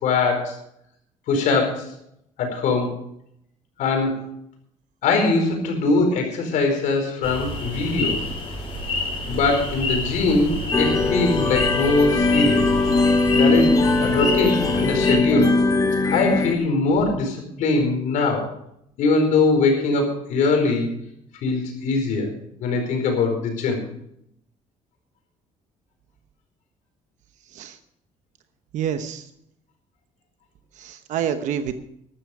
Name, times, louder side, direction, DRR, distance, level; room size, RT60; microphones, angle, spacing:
voice 1, 0.0-0.6 1.3-1.9 2.4-3.0 3.8-4.3 5.0-8.3 9.3-12.7 13.3-15.6 16.0-18.5 19.0-20.9 21.4-22.3 22.6-23.8, left 3 dB, 75° left, 4 dB, 4.5 m, -22 dB
sound 1, 7.2-15.2, left 2 dB, 40° left, 5.9 m, -28 dB
sound 2, 10.7-16.5, left 3 dB, 25° left, 1.3 m, -20 dB
voice 2, 28.7-29.3 30.8-31.7, right 9 dB, 70° right, 8 dB, 1.1 m, -27 dB
13.5 x 12.5 x 4.9 m, 0.74 s
cardioid pair, 145°, 13 cm